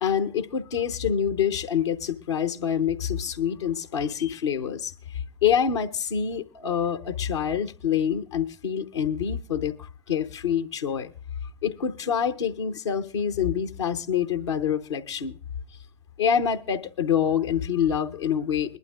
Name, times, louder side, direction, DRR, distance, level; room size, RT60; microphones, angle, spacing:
voice 1, 0.0-11.1 11.6-15.4 16.2-18.8, left 8 dB, 75° left, 6 dB, 0.9 m, -26 dB
22.0 x 12.0 x 2.4 m, 0.37 s
figure-of-eight pair, 65°, 15 cm